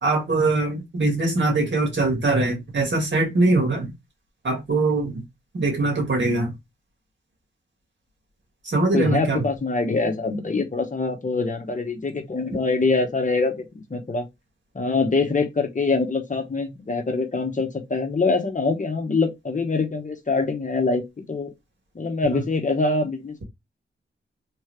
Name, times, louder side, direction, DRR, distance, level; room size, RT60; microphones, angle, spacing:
voice 1, 0.0-3.9 4.4-5.2 5.5-6.5 8.6-9.4 22.3-22.4, right 2 dB, 60° right, 2.0 m, -22 dB
voice 2, 8.9-14.3 14.7-21.0 21.3-21.5 21.9-23.4, left 3 dB, 40° left, 1.0 m, -24 dB
3.7 x 3.1 x 3.2 m
wide cardioid pair, 95°, 21 cm